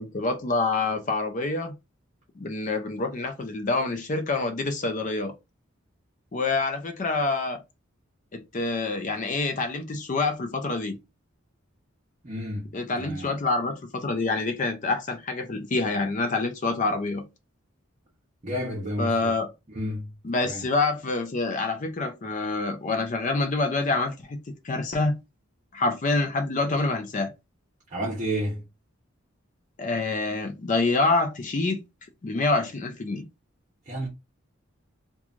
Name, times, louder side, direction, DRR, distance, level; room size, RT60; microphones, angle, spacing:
voice 1, 0.0-1.7 2.4-5.3 6.3-7.6 8.3-11.0 12.7-17.2 19.0-19.5 20.2-25.2 25.7-27.3 29.8-31.8 32.2-33.3, left 3 dB, 40° left, 0.4 m, -26 dB
voice 2, 12.2-12.7 13.0-13.3 18.4-19.3 19.7-20.1 20.4-20.6 27.9-28.6 33.9-34.1, equal, 35° right, 0.8 m, -31 dB
3.0 x 2.3 x 2.4 m
head